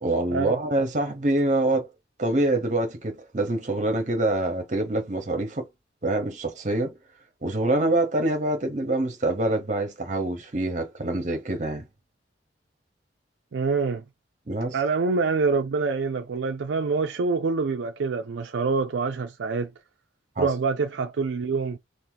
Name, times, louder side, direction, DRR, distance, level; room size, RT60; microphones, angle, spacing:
voice 1, 0.0-1.9 2.2-5.7 6.0-7.0 7.4-11.9 14.5-14.8 20.4-20.5, right 2 dB, 40° right, 0.9 m, -25 dB
voice 2, 13.5-14.0 14.7-19.7 20.4-21.8, right 4 dB, 65° right, 0.4 m, -26 dB
2.7 x 2.6 x 3.8 m
head